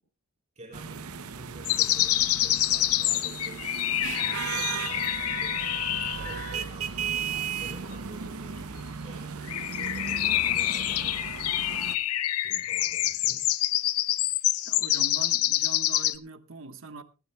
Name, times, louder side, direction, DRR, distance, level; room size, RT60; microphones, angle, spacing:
voice 1, 0.6-3.7 4.2-5.6 6.1-11.9 12.4-13.4, right 1 dB, 30° right, 4.4 m, -49 dB
sound 1, 0.7-12.0, right 6 dB, 85° right, 0.8 m, -36 dB
sound 2, 1.7-6.6 9.5-16.2, left 14 dB, 85° left, 0.6 m, -27 dB
voice 2, 14.6-17.0, right 3 dB, 65° right, 1.3 m, -42 dB
19.5 x 15.5 x 2.3 m
head